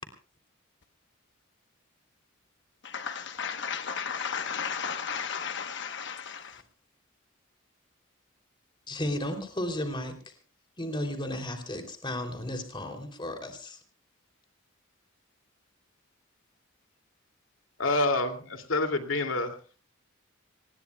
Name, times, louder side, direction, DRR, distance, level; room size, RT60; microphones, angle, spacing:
voice 1, 2.8-6.5, left 6 dB, 60° left, 1.1 m, -34 dB
voice 2, 8.9-10.3 10.8-13.8, left 1 dB, 25° left, 3.1 m, -34 dB
voice 3, 17.8-19.5, left 2 dB, 75° left, 2.6 m, -27 dB
26.0 x 20.0 x 2.3 m
head